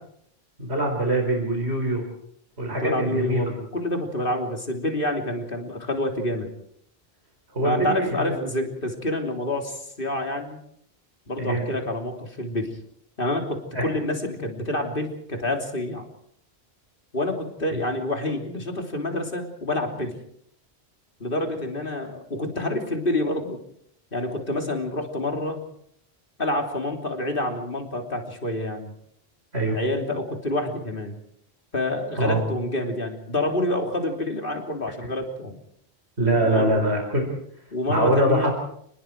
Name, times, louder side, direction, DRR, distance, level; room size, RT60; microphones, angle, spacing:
voice 1, 0.6-2.0 2.6-3.4 7.5-8.3 11.4-11.6 13.7-13.9 29.5-29.8 32.2-32.4 36.2-37.3 37.9-38.5, right 1 dB, 85° right, 1 dB, 5.0 m, -23 dB
voice 2, 2.8-6.5 7.6-10.6 11.3-12.7 13.2-16.1 17.1-20.2 21.2-23.6 24.1-25.6 26.4-28.9 29.7-31.2 31.7-35.5 36.4-36.9 37.7-38.5, left 1 dB, 55° left, 3 dB, 3.5 m, -27 dB
30.0 x 20.5 x 4.7 m, 0.68 s
omnidirectional pair, 1.1 m